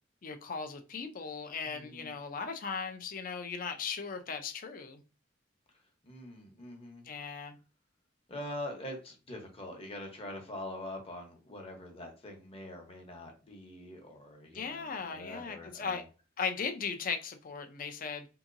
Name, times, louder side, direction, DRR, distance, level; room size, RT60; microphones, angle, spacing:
voice 1, 0.2-5.0 7.0-7.6 14.5-16.0 16.4-18.3, left 5 dB, 45° left, 0.5 m, -37 dB
voice 2, 1.6-2.1 6.0-7.1 8.3-16.0, left 1 dB, 30° left, 0.9 m, -44 dB
3.6 x 2.8 x 2.5 m
head